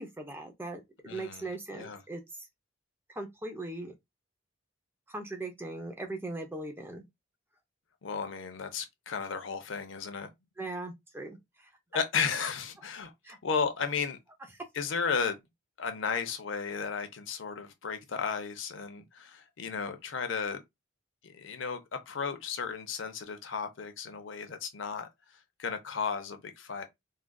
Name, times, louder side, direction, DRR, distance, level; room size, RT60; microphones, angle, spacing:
voice 1, 0.0-2.2 3.1-3.9 5.1-7.0 10.6-11.7 13.2-13.4, right 2 dB, 10° right, 0.5 m, -39 dB
voice 2, 1.0-1.5 1.7-2.0 8.0-10.3 11.9-13.1 13.4-14.2 14.7-15.4 15.8-20.6 21.2-25.1 25.6-26.9, left 5 dB, 70° left, 0.6 m, -34 dB
3.6 x 2.4 x 2.2 m
head